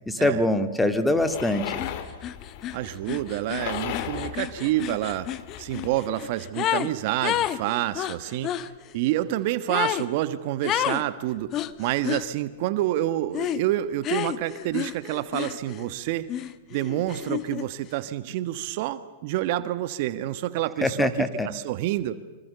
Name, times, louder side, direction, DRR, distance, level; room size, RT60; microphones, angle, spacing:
voice 1, 0.1-1.8 20.8-21.5, left 1 dB, 5° left, 9 dB, 2.2 m, -23 dB
sound 1, 1.2-6.0, left 9 dB, 50° left, 3.1 m, -37 dB
sound 2, 1.8-1.9 2.2-6.9 7.2-8.7 9.7-10.1 10.6-11.0 11.5-12.3 13.3-13.6 14.0-15.9 16.3-17.7, left 12 dB, 35° left, 1.3 m, -30 dB
voice 2, 2.7-5.3 5.6-8.5 8.9-16.2 16.7-22.2, right 14 dB, 55° right, 13 dB, 1.4 m, -28 dB
26.0 x 25.5 x 6.9 m, 1.3 s
hypercardioid pair, 115°, 0 cm